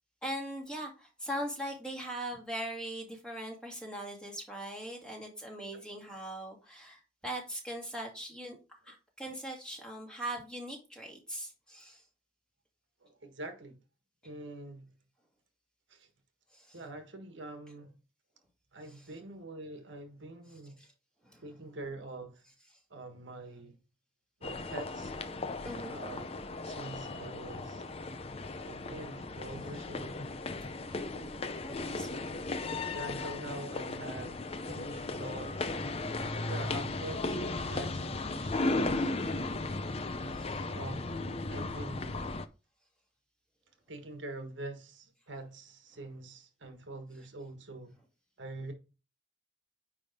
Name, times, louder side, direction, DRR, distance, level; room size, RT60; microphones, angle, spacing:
voice 1, 0.2-8.6 8.8-12.0 16.5-16.8 20.8-20.9 21.2-21.4 25.6-26.0 30.9-32.5 40.3-40.6, right 1 dB, 5° left, 2.1 m, -41 dB
voice 2, 13.0-13.8 14.2-14.9 15.9-16.1 16.7-18.0 18.7-20.8 21.4-22.4 22.9-23.8 24.4-25.1 25.8-26.3 26.6-27.8 28.6-30.2 31.7-32.2 32.9-35.7 36.5-39.1 40.7-42.3 43.9-47.9 48.4-48.7, right 2 dB, 65° right, 1.3 m, -45 dB
sound 1, 24.4-42.5, left 2 dB, 30° left, 0.5 m, -36 dB
9.5 x 3.4 x 5.2 m
head